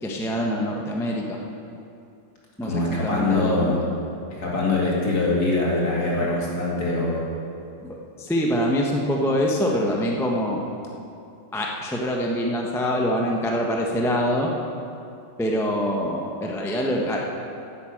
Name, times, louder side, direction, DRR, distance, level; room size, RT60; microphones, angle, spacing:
voice 1, 0.0-1.4 2.6-3.8 6.2-6.4 7.8-10.6 11.5-14.5 15.4-17.2, equal, ahead, -1 dB, 0.7 m, -25 dB
voice 2, 2.6-3.8 4.4-7.2, left 2 dB, 50° left, -4 dB, 2.9 m, -23 dB
10.5 x 8.6 x 7.8 m, 2.6 s
omnidirectional pair, 2.1 m